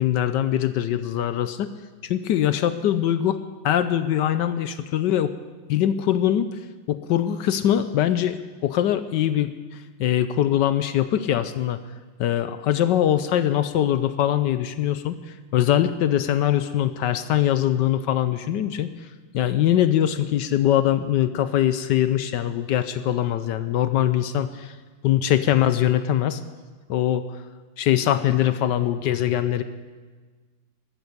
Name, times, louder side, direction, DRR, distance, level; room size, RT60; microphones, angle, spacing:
voice 1, 0.0-1.7 2.0-3.4 3.6-5.3 5.7-6.5 6.9-8.4 8.6-9.5 10.0-11.8 12.2-15.1 15.5-18.9 19.3-24.8 25.0-26.4 26.9-27.3 27.8-29.6, left 11 dB, 70° left, 12 dB, 1.1 m, -22 dB
14.0 x 13.0 x 6.7 m, 1.4 s
omnidirectional pair, 2.3 m